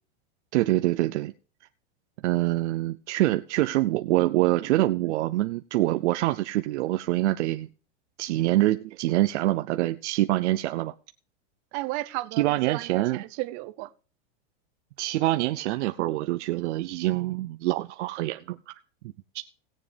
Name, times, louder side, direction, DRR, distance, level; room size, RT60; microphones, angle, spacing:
voice 1, 0.5-1.3 2.2-7.7 8.2-10.9 12.4-13.2 15.0-18.6 19.3-19.4, right 16 dB, 80° right, 0.6 m, -25 dB
voice 2, 11.7-13.9, right 19 dB, 45° right, 0.7 m, -34 dB
18.5 x 7.4 x 3.4 m
supercardioid pair, 145°, 34 cm